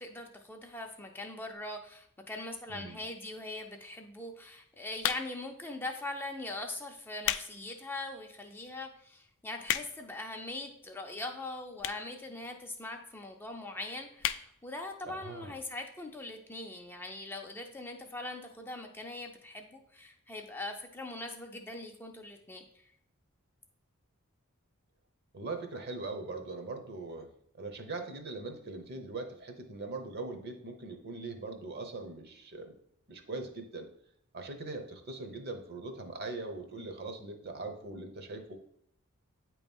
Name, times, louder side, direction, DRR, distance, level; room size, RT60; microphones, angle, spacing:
voice 1, 0.0-22.9, left 2 dB, 10° left, 3 dB, 0.5 m, -41 dB
sound 1, 5.0-5.5 6.3-6.5 7.0-7.5 7.9-8.0 8.7-8.8 8.9-9.0 9.3-10.1 10.9-11.0 11.8-12.1 12.4-12.5 12.7-12.8 13.0-13.1 13.4-13.7 14.2-14.5 14.9-15.0 15.1-15.2, left 12 dB, 65° left, 0.4 m, -33 dB
voice 2, 15.1-15.6 25.3-27.3 27.6-32.7 33.1-33.9 34.3-38.5, right 3 dB, 50° right, 6 dB, 0.9 m, -41 dB
8.6 x 3.0 x 5.3 m, 0.69 s
head